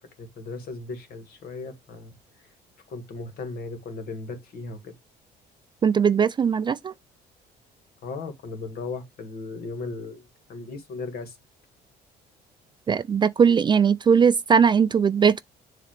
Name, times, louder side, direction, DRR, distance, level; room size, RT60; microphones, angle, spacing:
voice 1, 0.2-2.1 2.9-4.9 8.0-11.4, left 3 dB, 65° left, 1.8 m, -36 dB
voice 2, 5.8-6.9 12.9-15.4, right 6 dB, 25° right, 0.3 m, -19 dB
7.2 x 2.9 x 5.0 m
cardioid pair, 110°, 17 cm